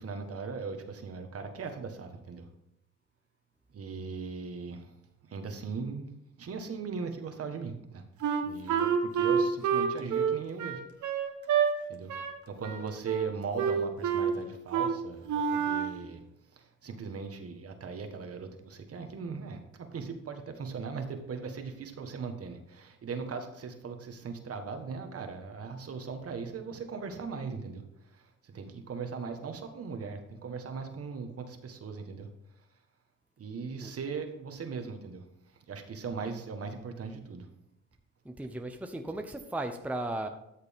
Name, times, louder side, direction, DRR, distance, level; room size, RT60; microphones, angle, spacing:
voice 1, 0.0-2.5 3.7-4.9 5.2-6.1 6.4-8.0 8.4-10.8 11.9-12.1 12.5-16.2 16.5-32.3 33.4-37.5, right 5 dB, 50° right, 6 dB, 1.5 m, -39 dB
Wind instrument woodwind instrument, 8.2-11.7 12.1-12.4 12.6-13.3 13.6-14.3 14.7-14.9 15.3-16.0, right 7 dB, 75° right, 1.2 m, -28 dB
voice 2, 38.2-40.3, right 2 dB, 5° right, 5 dB, 0.8 m, -36 dB
13.0 x 6.6 x 3.6 m, 0.83 s
cardioid pair, 90°, 30 cm